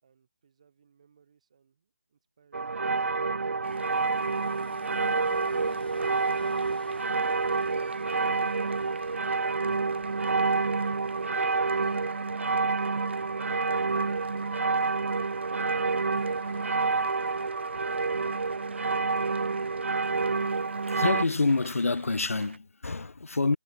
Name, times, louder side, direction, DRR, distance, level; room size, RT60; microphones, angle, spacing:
voice 1, 0.0-3.2, right 7 dB, 30° right, 5.2 m, -64 dB
sound 1, 2.5-21.2, right 4 dB, 70° right, 0.5 m, -28 dB
sound 2, 3.6-21.8, left 4 dB, 50° left, 1.6 m, -55 dB
sound 3, 3.6-22.6, right 4 dB, 55° right, 0.9 m, -49 dB
voice 2, 20.9-23.6, left 3 dB, 90° left, 0.9 m, -27 dB
figure-of-eight pair, 175°, 7 cm